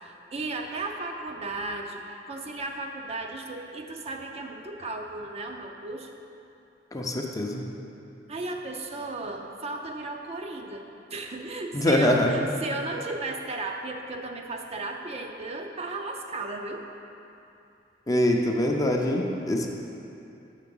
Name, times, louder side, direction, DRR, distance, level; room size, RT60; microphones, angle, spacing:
voice 1, 0.0-6.1 8.3-10.8 11.1-16.8, right 2 dB, 35° right, 3 dB, 0.5 m, -35 dB
voice 2, 6.9-7.6 11.7-12.3 18.1-19.7, left 1 dB, 20° left, 1 dB, 0.5 m, -24 dB
6.7 x 5.9 x 5.4 m, 2.8 s
head